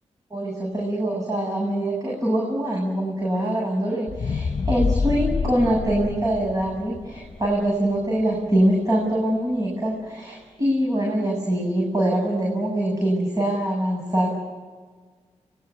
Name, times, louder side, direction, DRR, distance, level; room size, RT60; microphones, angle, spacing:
voice 1, 0.3-14.3, right 1 dB, 30° right, -2 dB, 7.4 m, -24 dB
sound 1, 4.1-8.3 8.8-8.9, left 5 dB, 40° left, 1.4 m, -27 dB
24.5 x 21.0 x 8.5 m, 1.5 s
cardioid pair, 95°, 12 cm